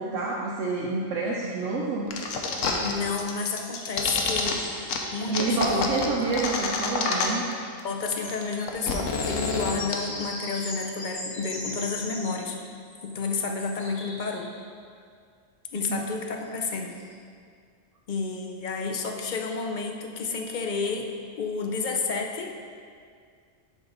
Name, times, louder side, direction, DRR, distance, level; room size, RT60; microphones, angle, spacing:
voice 1, 0.0-2.1 5.3-7.4 15.9-16.0, right 3 dB, 80° right, -3 dB, 1.0 m, -28 dB
sound 1, 2.1-2.9 3.2-4.5 4.9-5.0 5.3-7.5 7.8-7.9 8.1-9.9, left 4 dB, 90° left, 1.1 m, -28 dB
voice 2, 2.8-4.6 5.1-6.0 7.8-12.6 13.0-14.5 15.7-17.0 18.1-21.1 21.4-22.5, left 4 dB, 60° left, 3 dB, 0.5 m, -30 dB
sound 2, 3.4-6.2 7.1-7.2 7.4-14.6 16.4-16.5 16.9-17.1, left 1 dB, 35° left, 1.4 m, -40 dB
9.3 x 3.8 x 3.9 m, 2.2 s
omnidirectional pair, 1.3 m